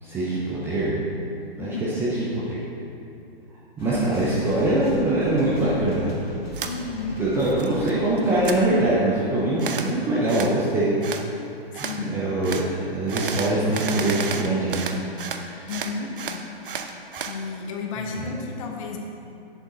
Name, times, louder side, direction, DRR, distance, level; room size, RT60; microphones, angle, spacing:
voice 1, 0.0-1.0 1.6-2.6 3.8-6.1 7.2-11.0 12.0-14.8 15.3-15.7 18.0-18.3, right 1 dB, 10° right, -7 dB, 0.5 m, -23 dB
sound 1, 3.8-8.8, left 1 dB, 75° left, 1.7 m, -39 dB
sound 2, 6.5-6.7 7.2-7.9 8.2-8.6 9.6-9.9 10.3-10.6 11.0-11.2 11.7-12.0 12.4-12.7 13.1-15.4 15.7-17.4, right 6 dB, 60° right, 0.7 m, -32 dB
voice 2, 6.6-7.2 11.8-12.1 15.7-16.4 17.3-19.0, left 4 dB, 35° left, 1 dB, 0.9 m, -32 dB
7.1 x 7.1 x 3.8 m, 2.7 s
figure-of-eight pair, 120°, 30 cm